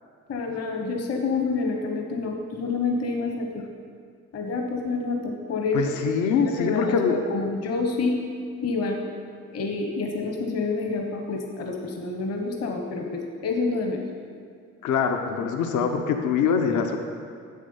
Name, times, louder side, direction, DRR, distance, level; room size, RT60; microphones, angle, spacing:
voice 1, 0.3-3.6 4.3-5.8 6.4-8.2 8.6-9.0 9.5-14.0, left 3 dB, 55° left, 2 dB, 1.1 m, -28 dB
voice 2, 5.7-7.2 14.8-17.0, left 6 dB, 75° left, 5 dB, 0.8 m, -24 dB
7.4 x 7.3 x 5.6 m, 2.2 s
cardioid pair, 90°, 30 cm